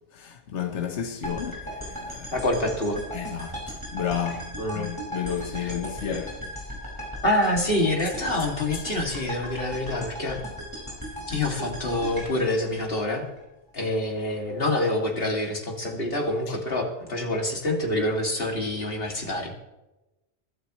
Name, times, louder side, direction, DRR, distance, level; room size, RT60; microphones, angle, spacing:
voice 1, 0.1-2.4 3.1-6.4 8.7-8.8 16.5-16.6, left 8 dB, 75° left, 1.4 m, -32 dB
sound 1, 1.2-13.4, equal, 15° right, 5.5 m, -37 dB
voice 2, 2.3-3.0 4.6-4.9 5.6-5.7 7.2-10.4 11.3-13.3 13.7-19.5, left 1 dB, 50° left, 2.7 m, -26 dB
23.5 x 12.0 x 3.1 m
omnidirectional pair, 1.2 m